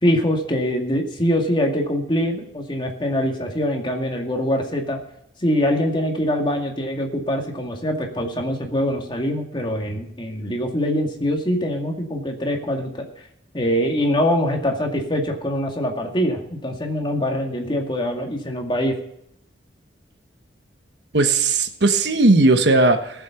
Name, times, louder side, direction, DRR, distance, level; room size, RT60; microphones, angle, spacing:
voice 1, 0.0-5.0 5.4-12.9 13.5-19.0, equal, 25° left, 2 dB, 2.1 m, -23 dB
voice 2, 21.1-23.2, right 2 dB, 65° right, 7 dB, 1.2 m, -17 dB
18.0 x 7.6 x 5.8 m, 0.75 s
head